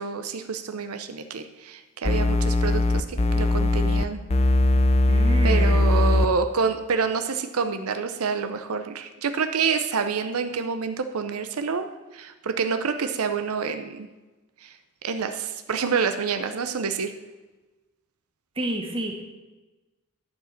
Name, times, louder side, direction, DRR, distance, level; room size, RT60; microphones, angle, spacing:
voice 1, 0.0-4.2 5.4-11.9 12.1-14.1 14.6-14.7 15.0-17.1, right 5 dB, 85° right, 8 dB, 0.7 m, -27 dB
sound 1, 2.0-4.0 4.3-6.3, left 2 dB, 30° left, 0.5 m, -20 dB
voice 2, 5.1-5.9 18.5-19.2, right 1 dB, 25° right, 1 dB, 1.5 m, -30 dB
11.0 x 5.0 x 7.2 m, 1.1 s
head